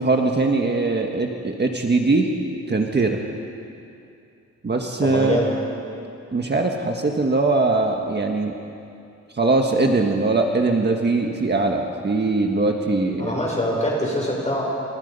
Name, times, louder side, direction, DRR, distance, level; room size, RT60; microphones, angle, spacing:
voice 1, 0.0-2.3 2.7-3.2 4.6-5.5 6.3-8.6 9.3-13.4, right 3 dB, 35° right, 2 dB, 1.6 m, -21 dB
voice 2, 5.0-5.5 13.2-14.6, equal, 25° left, -2 dB, 7.1 m, -24 dB
28.0 x 28.0 x 5.6 m, 2.6 s
wide cardioid pair, 145°, 29 cm